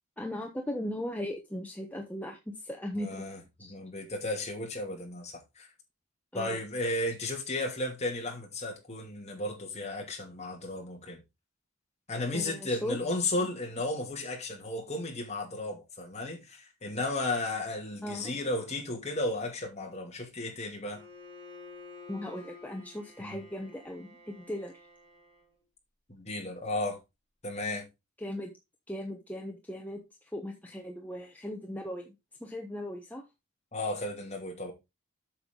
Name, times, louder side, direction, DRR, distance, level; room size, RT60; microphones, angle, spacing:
voice 1, 0.2-3.2 3.6-3.7 6.3-6.6 12.3-13.0 18.0-18.4 22.1-24.7 28.2-28.5 28.9-30.0 30.3-32.1 32.4-33.2, left 1 dB, 10° left, 1.1 m, -38 dB
voice 2, 3.0-5.7 6.3-11.2 12.1-21.0 23.2-23.4 26.1-27.0 27.4-27.9 33.7-34.7, left 2 dB, 35° left, 2.7 m, -34 dB
Bowed string instrument, 20.8-25.6, left 3 dB, 30° right, 3.6 m, -51 dB
8.1 x 6.7 x 3.9 m
head